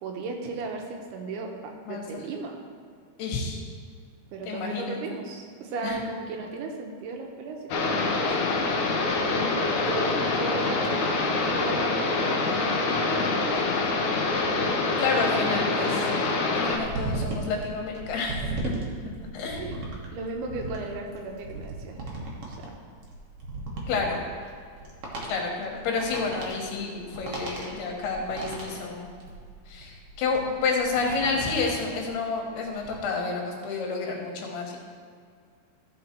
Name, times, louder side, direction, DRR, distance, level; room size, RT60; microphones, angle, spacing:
voice 1, 0.0-2.6 4.3-8.7 9.3-13.9 19.6-19.7 20.1-22.0 22.5-22.7, right 3 dB, 90° right, 2 dB, 3.1 m, -36 dB
voice 2, 3.2-3.6 4.4-5.0 5.8-6.0 15.0-16.1 16.5-18.7 19.3-19.8 23.9-24.2 25.2-29.1 29.7-34.8, left 4 dB, 85° left, 1 dB, 3.4 m, -30 dB
sound 1, 7.7-16.8, left 3 dB, 70° left, 2.0 m, -25 dB
sound 2, 16.6-32.1 32.5-33.0, right 2 dB, 55° right, 1.7 m, -36 dB
14.0 x 5.2 x 4.5 m, 2.1 s
omnidirectional pair, 4.5 m